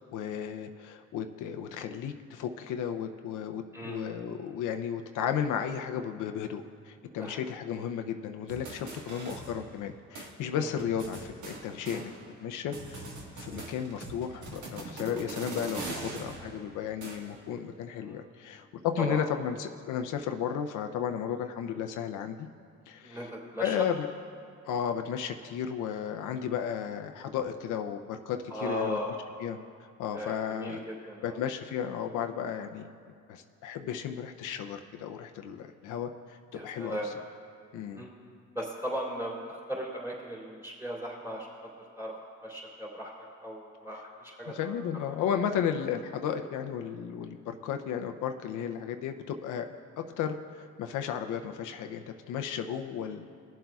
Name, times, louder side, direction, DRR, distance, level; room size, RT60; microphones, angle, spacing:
voice 1, 0.1-12.1 12.4-13.1 13.4-22.5 22.9-23.3 23.6-24.1 24.6-29.0 29.4-30.8 31.2-32.9 33.3-37.0 37.7-38.1 44.5-49.7 50.0-53.3, left 8 dB, 85° left, 6 dB, 0.6 m, -34 dB
voice 2, 3.7-4.1 7.2-7.5 8.8-8.9 10.5-10.7 11.9-12.0 13.5-13.6 18.0-18.2 19.0-19.2 23.0-23.9 28.5-29.1 30.1-31.4 36.5-37.1 37.9-38.1 38.5-41.5 42.0-42.1 42.4-43.1 43.4-44.7, equal, 10° right, -4 dB, 2.8 m, -37 dB
sound 1, 8.5-9.9 10.1-10.3 10.8-12.4 12.7-17.5, right 2 dB, 80° right, 1.5 m, -42 dB
21.5 x 7.5 x 2.3 m, 2.3 s
cardioid pair, 90°, 30 cm